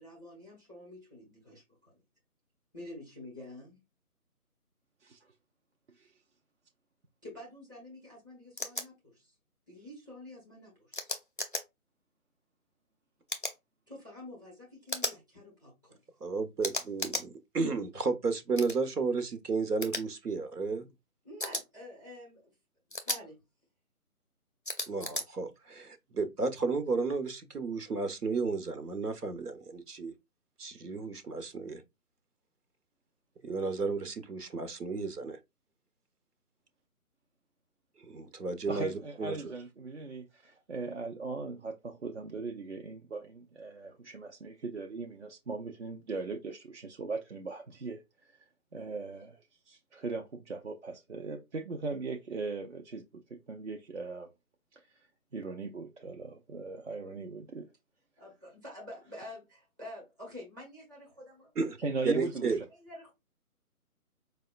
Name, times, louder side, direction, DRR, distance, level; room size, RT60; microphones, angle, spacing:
voice 1, 0.0-1.9 2.7-3.8 7.2-9.3 9.7-11.1 13.9-16.0 21.2-22.5 23.1-23.4 58.2-61.5 62.7-63.1, left 1 dB, 15° right, 0.7 m, -48 dB
sound 1, 8.6-8.8 10.9-11.6 13.3-13.6 14.9-15.2 16.6-17.3 18.6-18.8 19.8-20.0 21.4-21.6 22.9-23.2 24.7-25.2, left 1 dB, 35° left, 0.4 m, -34 dB
voice 2, 16.2-17.3 17.5-20.8 24.9-30.1 30.6-31.8 33.4-35.4 38.1-38.9 39.2-39.3 61.6-61.8 62.0-62.6, right 4 dB, 85° right, 0.9 m, -32 dB
voice 3, 38.7-48.4 48.7-54.3 54.8-55.1 55.3-57.7 61.8-62.6, right 3 dB, 50° right, 0.4 m, -39 dB
4.7 x 2.1 x 2.3 m
figure-of-eight pair, 155°, 45 cm